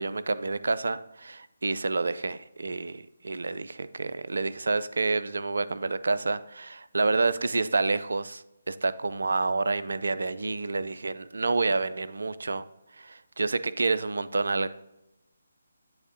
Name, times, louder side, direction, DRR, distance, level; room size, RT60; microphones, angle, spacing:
voice 1, 0.0-8.4 8.7-12.7 13.0-14.7, right 3 dB, 60° right, 14 dB, 0.3 m, -28 dB
10.5 x 3.6 x 2.7 m, 0.90 s
figure-of-eight pair, 145°, 0 cm